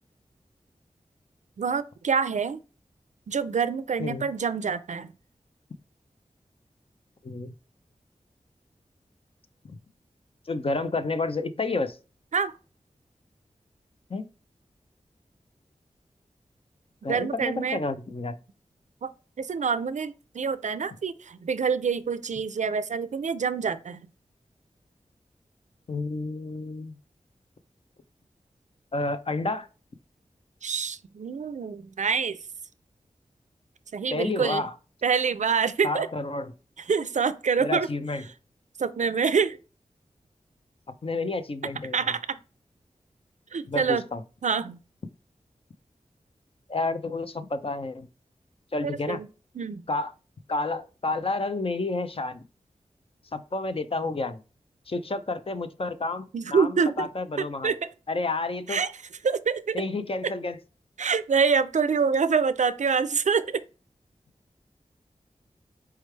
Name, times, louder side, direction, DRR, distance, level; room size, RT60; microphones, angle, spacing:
voice 1, 1.6-2.6 3.3-5.1 12.3-12.5 17.1-17.8 19.0-19.1 19.4-24.0 30.6-32.4 33.9-34.6 35.0-36.1 36.9-37.9 38.8-39.6 41.9-42.4 43.5-44.0 44.4-44.8 49.1-49.3 49.6-49.8 56.3-57.1 57.4-57.8 58.7-58.9 59.2-59.8 61.0-63.6, right 6 dB, 70° right, 0.4 m, -26 dB
voice 2, 10.5-12.0 14.1-14.3 17.0-18.4 25.9-26.9 28.9-29.7 34.1-34.7 35.8-36.5 37.6-38.2 41.0-42.1 43.7-44.2 46.7-48.1 48.7-49.2 49.9-50.1 50.5-52.4 53.3-54.4 54.9-56.3 56.5-57.8 58.1-58.8 59.7-60.6, left 3 dB, 45° left, 0.6 m, -30 dB
4.6 x 3.2 x 3.2 m
wide cardioid pair, 65°, 13 cm